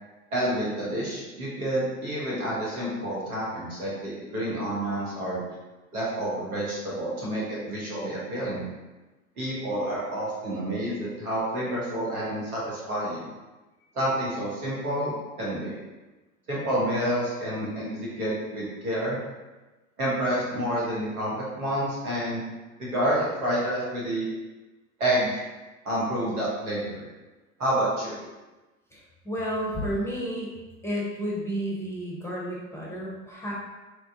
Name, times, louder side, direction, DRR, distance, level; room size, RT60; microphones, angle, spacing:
voice 1, 0.3-5.4 5.9-8.7 9.4-13.3 13.9-15.8 16.5-19.2 20.0-22.4 22.8-24.3 25.0-25.4 25.8-27.1 27.6-28.2, right 1 dB, 85° right, -6 dB, 1.2 m, -29 dB
voice 2, 28.9-30.5 30.8-33.5, equal, 5° left, -5 dB, 0.7 m, -31 dB
3.1 x 2.3 x 2.7 m, 1.1 s
hypercardioid pair, 80°, 43 cm